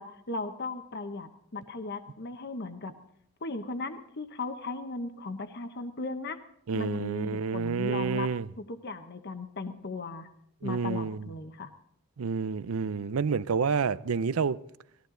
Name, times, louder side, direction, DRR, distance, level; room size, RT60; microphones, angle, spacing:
voice 1, 0.0-2.9 3.4-6.4 6.7-8.3 8.6-10.3 10.6-11.7, left 3 dB, 45° left, 1.0 m, -37 dB
voice 2, 6.7-8.5 10.6-11.3 12.2-14.6, right 5 dB, 70° right, 0.5 m, -29 dB
19.5 x 14.5 x 3.8 m
head